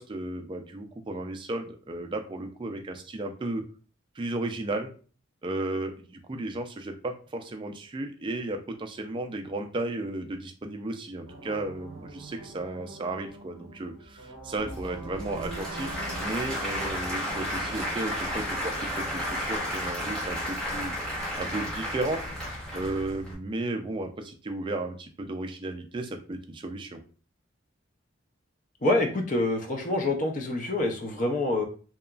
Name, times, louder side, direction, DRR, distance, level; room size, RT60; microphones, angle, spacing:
voice 1, 0.0-3.6 4.2-4.9 5.4-20.9 21.4-22.2 22.7-27.0, right 2 dB, 25° right, 5 dB, 0.3 m, -34 dB
sound 1, 11.3-18.9, right 3 dB, 85° right, 0.7 m, -44 dB
Applause / Crowd, 14.6-23.3, equal, 5° left, 0.7 m, -33 dB
voice 2, 28.8-31.6, left 2 dB, 40° left, 4 dB, 0.5 m, -26 dB
2.8 x 2.4 x 2.3 m, 0.39 s
head